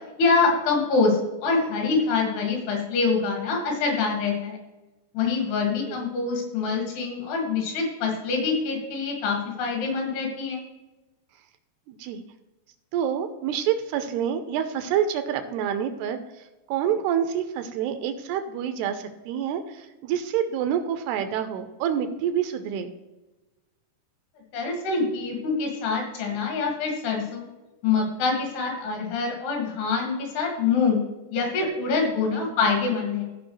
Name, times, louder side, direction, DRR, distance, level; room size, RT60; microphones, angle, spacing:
voice 1, 0.2-4.6 5.1-10.6 24.5-27.5 27.8-31.0 31.3-33.3, left 4 dB, 70° left, 0 dB, 4.0 m, -25 dB
voice 2, 11.9-12.2 12.9-16.2 16.7-22.9 32.4-32.5, right 9 dB, 80° right, 8 dB, 2.6 m, -27 dB
15.5 x 5.4 x 3.1 m, 1.1 s
omnidirectional pair, 5.0 m